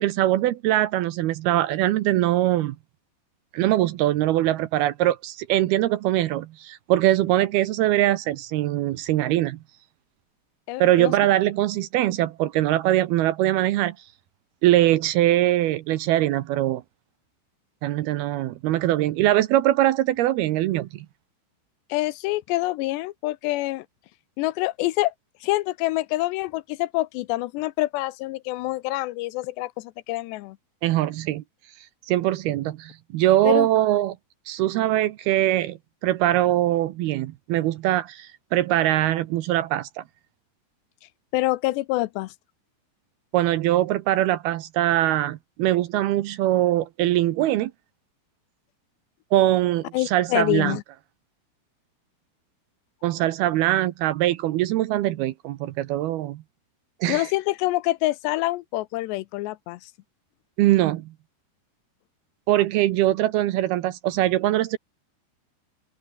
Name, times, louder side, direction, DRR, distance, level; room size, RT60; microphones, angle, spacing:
voice 1, 0.0-2.8 3.5-9.6 10.8-14.0 14.6-16.8 17.8-21.1 30.8-31.4 32.1-34.2 34.5-40.0 43.3-47.7 49.3-50.8 53.0-56.4 57.0-57.3 60.6-61.1 62.5-64.8, right 14 dB, 75° right, 2.5 m, -22 dB
voice 2, 10.7-11.1 21.9-23.9 24.4-25.1 25.4-30.6 33.4-33.7 41.3-42.3 49.9-50.8 57.1-59.9, left 18 dB, 80° left, 2.8 m, -26 dB
omnidirectional pair, 5.1 m